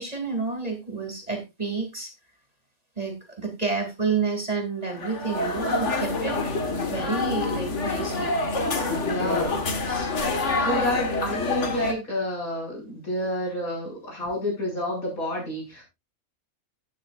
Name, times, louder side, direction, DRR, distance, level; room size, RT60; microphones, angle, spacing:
voice 1, 0.0-2.1 3.0-6.4 6.7-8.3 14.2-14.3, right 4 dB, 25° right, 5 dB, 2.5 m, -30 dB
sound 1, 4.9-11.9, left 3 dB, 60° left, 1.9 m, -26 dB
voice 2, 8.9-10.1 10.6-15.8, left 1 dB, 85° left, 0 dB, 6.8 m, -30 dB
15.5 x 8.8 x 2.5 m, 0.23 s
omnidirectional pair, 1.4 m